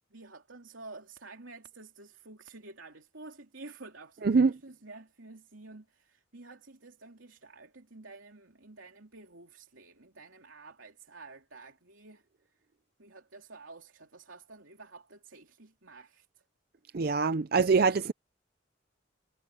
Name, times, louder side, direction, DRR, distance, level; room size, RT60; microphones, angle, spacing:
voice 1, 0.1-12.5 13.0-16.4, right 3 dB, 85° right, 3.3 m, -50 dB
voice 2, 16.9-18.1, right 4 dB, 50° right, 0.5 m, -24 dB
head